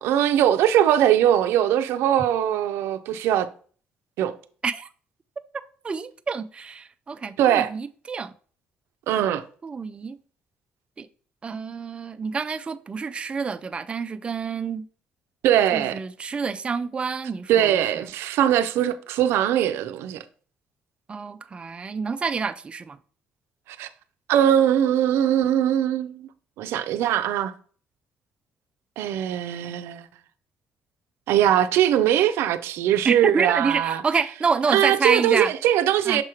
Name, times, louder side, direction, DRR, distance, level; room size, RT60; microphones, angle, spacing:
voice 1, 0.0-3.5 4.2-4.3 7.4-7.7 9.1-9.4 15.4-16.0 17.5-20.2 23.7-23.9 24.3-26.3 26.6-27.5 29.0-30.1 31.3-34.0 34.7-36.2, right 11 dB, 85° right, 0.5 m, -21 dB
voice 2, 5.8-8.3 9.6-10.2 11.0-11.1 11.4-14.8 15.7-17.9 21.1-23.0 33.0-35.5 36.1-36.2, right 5 dB, 25° right, 0.4 m, -28 dB
6.5 x 3.0 x 4.8 m
cardioid pair, 110°, 4 cm